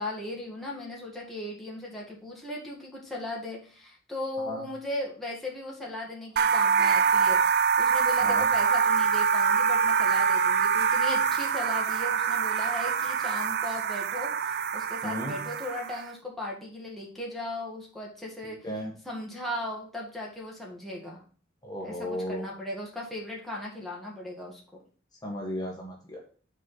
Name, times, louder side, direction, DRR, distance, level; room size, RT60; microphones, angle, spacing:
voice 1, 0.0-18.7 19.0-21.2 21.8-24.6, left 1 dB, ahead, -4 dB, 1.8 m, -37 dB
sound 1, 6.4-16.1, right 6 dB, 55° right, 0.4 m, -25 dB
voice 2, 15.0-15.4 18.6-18.9 21.6-22.4 25.2-26.2, left 1 dB, 20° left, -1 dB, 1.6 m, -34 dB
6.2 x 4.6 x 5.6 m, 0.41 s
head